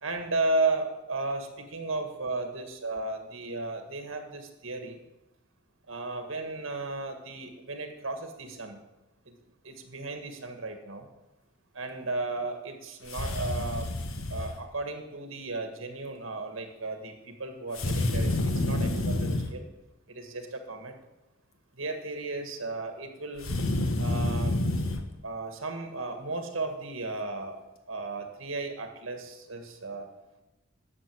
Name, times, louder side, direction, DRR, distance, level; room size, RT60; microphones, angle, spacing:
voice 1, 0.0-5.0 5.9-8.8 9.3-9.4 9.6-11.1 11.7-13.9 14.3-19.7 20.1-20.9 21.7-23.5 24.0-24.6 25.2-27.6 27.9-30.1, right 2 dB, 70° right, 5 dB, 1.8 m, -34 dB
sound 1, 13.1-14.6 17.7-19.5 23.4-25.0, left 1 dB, 90° left, 1.3 m, -28 dB
11.5 x 6.8 x 7.7 m, 0.99 s
head